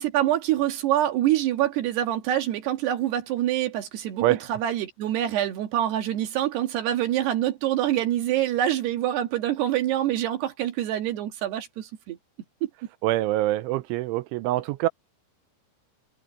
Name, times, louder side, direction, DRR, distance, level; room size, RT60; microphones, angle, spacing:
voice 1, 0.0-4.2 4.5-12.2 12.6-12.7, right 12 dB, 65° right, 3.3 m, -25 dB
voice 2, 13.0-14.9, right 16 dB, 85° right, 3.0 m, -24 dB
omnidirectional pair, 5.7 m